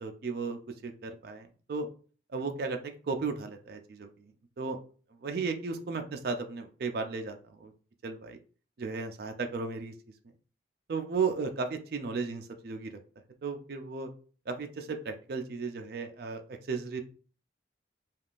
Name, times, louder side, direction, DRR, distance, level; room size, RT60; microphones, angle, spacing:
voice 1, 0.0-1.9 2.3-4.1 4.6-4.8 5.2-7.7 8.0-8.4 8.8-9.9 10.9-12.9 13.4-14.1 14.5-17.0, right 4 dB, 55° right, 5 dB, 0.4 m, -35 dB
3.5 x 2.4 x 2.4 m, 0.40 s
head